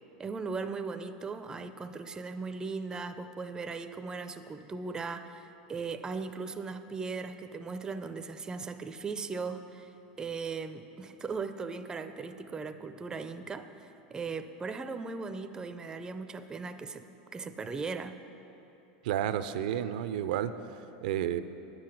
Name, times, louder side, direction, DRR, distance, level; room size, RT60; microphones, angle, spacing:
voice 1, 0.2-9.9 10.2-17.0 17.3-18.2, right 4 dB, 15° right, 9 dB, 0.4 m, -38 dB
voice 2, 19.0-20.6 21.0-21.4, right 10 dB, 75° right, 12 dB, 0.4 m, -31 dB
10.0 x 7.7 x 6.3 m, 2.9 s
supercardioid pair, 125°, 5 cm